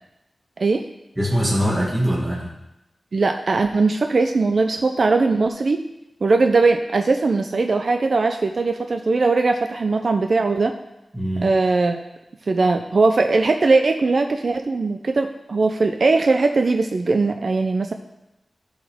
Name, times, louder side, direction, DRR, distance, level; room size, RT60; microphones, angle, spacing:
voice 1, 1.2-2.5 11.1-11.5, equal, 15° right, -6 dB, 2.1 m, -22 dB
voice 2, 3.1-5.8 6.2-10.8 11.4-12.0 12.5-17.9, right 3 dB, 60° right, 6 dB, 0.5 m, -20 dB
12.0 x 4.9 x 3.5 m, 0.91 s
wide cardioid pair, 70°, 0 cm